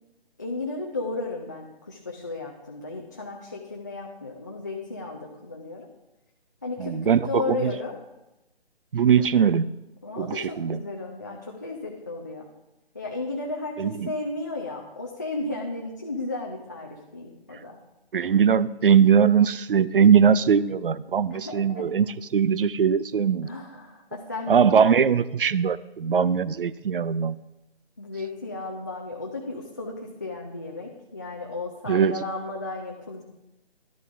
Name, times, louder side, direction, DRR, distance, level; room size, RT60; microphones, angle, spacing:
voice 1, 0.4-5.9 6.6-8.0 10.0-12.5 12.9-17.8 21.3-21.9 23.4-24.9 28.0-33.2, left 3 dB, 20° left, -1 dB, 0.4 m, -34 dB
voice 2, 6.8-7.7 8.9-9.7 10.2-10.8 13.8-14.1 18.1-22.1 22.3-23.5 24.5-27.4 31.9-32.2, right 7 dB, 60° right, 19 dB, 0.4 m, -21 dB
13.5 x 11.5 x 2.5 m, 0.97 s
figure-of-eight pair, 145°, 31 cm